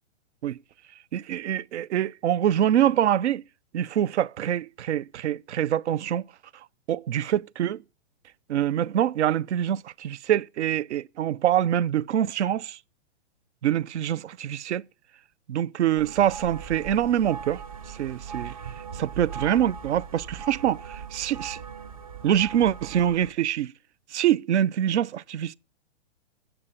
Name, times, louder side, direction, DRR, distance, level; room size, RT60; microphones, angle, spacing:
voice 1, 1.1-3.4 3.7-6.2 6.9-7.8 8.5-12.8 13.6-14.8 15.5-17.6 17.9-18.5 19.0-21.6 22.2-23.7 24.1-25.5, right 10 dB, 75° right, 0.5 m, -25 dB
sound 1, 16.0-23.3, right 6 dB, 30° right, 0.7 m, -39 dB
11.0 x 7.8 x 7.1 m
hypercardioid pair, 175°, 35 cm